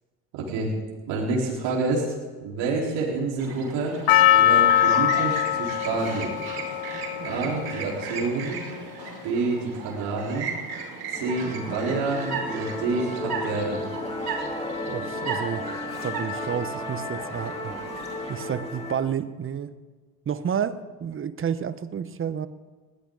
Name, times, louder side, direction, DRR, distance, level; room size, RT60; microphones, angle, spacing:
voice 1, 0.3-0.7 1.1-2.2 2.4-4.0 4.3-6.4 7.2-8.6 9.2-10.5 11.1-13.8, right 3 dB, 65° right, -4 dB, 4.3 m, -28 dB
Chirp tweet, 3.4-18.5, right 5 dB, 50° right, 5.6 m, -36 dB
Percussion, 4.1-8.4 9.1-9.2, left 12 dB, 50° left, 1.1 m, -22 dB
Musical instrument, 11.1-19.0, left 1 dB, 15° left, 3.4 m, -34 dB
voice 2, 14.9-15.7 16.0-17.7 18.3-19.7 20.3-22.5, right 8 dB, 25° right, 14 dB, 1.0 m, -30 dB
20.0 x 16.5 x 4.0 m, 1.3 s
hypercardioid pair, 80°, 47 cm